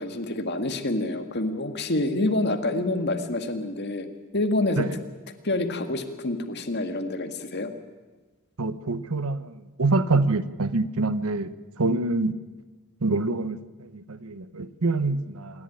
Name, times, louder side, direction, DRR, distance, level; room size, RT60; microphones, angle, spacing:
voice 1, 0.0-4.1 4.3-4.9 5.4-7.7, left 2 dB, 50° left, 6 dB, 1.9 m, -27 dB
voice 2, 8.6-11.5 11.8-12.3 13.0-15.6, right 3 dB, 85° right, 13 dB, 1.0 m, -26 dB
26.0 x 11.0 x 10.0 m, 1.3 s
head